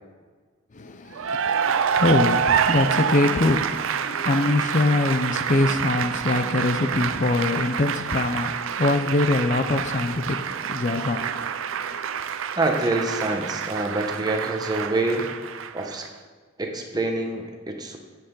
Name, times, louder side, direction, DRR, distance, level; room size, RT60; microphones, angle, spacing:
voice 1, 0.7-12.0, left 2 dB, 40° left, 0.5 m, -24 dB
Cheering / Applause, 1.1-16.1, right 7 dB, 80° right, 0.5 m, -27 dB
voice 2, 12.5-15.3 15.7-16.1 16.6-18.0, right 2 dB, 20° right, 1.1 m, -26 dB
15.0 x 8.1 x 3.9 m
head